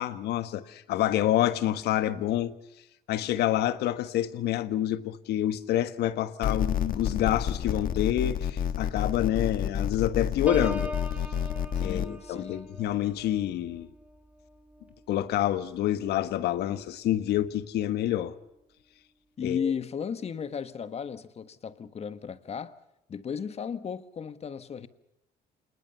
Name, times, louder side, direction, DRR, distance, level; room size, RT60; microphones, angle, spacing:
voice 1, 0.0-2.5 3.1-10.9 11.8-13.9 15.1-18.3 19.4-19.7, left 12 dB, 75° left, 1.4 m, -27 dB
sound 1, 6.4-12.1, left 8 dB, 55° left, 1.6 m, -29 dB
Piano, 10.5-16.1 16.6-16.9, equal, 10° right, 2.2 m, -41 dB
voice 2, 11.8-12.7 19.4-22.7 23.1-24.9, left 7 dB, 40° left, 1.5 m, -35 dB
27.0 x 20.5 x 7.0 m
cardioid pair, 110°, 17 cm